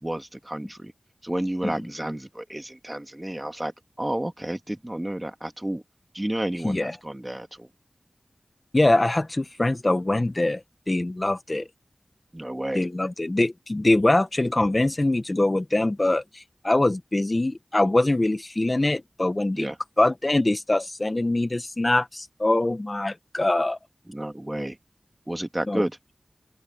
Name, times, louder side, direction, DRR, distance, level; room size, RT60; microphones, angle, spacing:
voice 1, 0.0-0.9 1.2-5.8 6.1-7.7 12.3-12.9 19.5-19.8 24.1-24.8 25.3-26.0, right 1 dB, 20° right, 2.0 m, -31 dB
voice 2, 8.7-11.7 12.7-19.7 20.0-23.8 25.7-25.8, left 2 dB, 35° left, 0.9 m, -23 dB
open air
wide cardioid pair, 70°, 0 cm